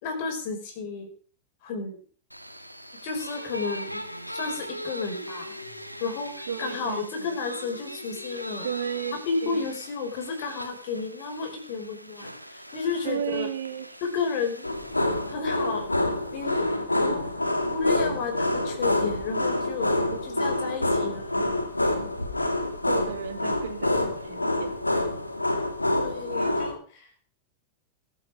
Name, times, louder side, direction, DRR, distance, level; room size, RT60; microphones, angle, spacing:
voice 1, 0.0-1.1 1.6-2.0 3.0-4.0 4.3-5.5 6.0-8.7 9.3-13.5 14.0-14.7 15.3-15.9 16.3-16.7 16.9-17.2 17.7-19.9 20.2-21.5 25.9-27.1, left 5 dB, 50° left, 3 dB, 5.3 m, -32 dB
sound 1, 2.3-16.5, equal, 90° right, 1.7 m, -41 dB
voice 2, 6.5-7.4 8.6-9.7 13.0-14.0 20.0-20.6 22.9-24.8, right 8 dB, 65° right, 7 dB, 2.5 m, -34 dB
sound 2, 14.6-26.7, left 1 dB, 85° left, 2.5 m, -27 dB
21.5 x 8.3 x 5.1 m, 0.42 s
figure-of-eight pair, 90°, 0 cm